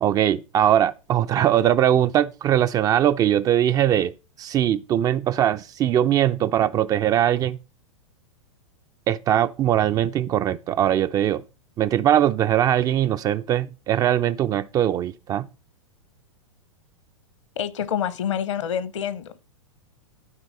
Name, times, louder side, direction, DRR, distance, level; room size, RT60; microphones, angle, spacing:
voice 1, 0.0-4.1 4.4-7.6 9.1-11.4 11.8-15.5, right 11 dB, 20° right, 0.4 m, -21 dB
voice 2, 17.6-19.5, left 9 dB, 65° left, 1.0 m, -27 dB
12.5 x 4.6 x 5.5 m
figure-of-eight pair, 105°, 17 cm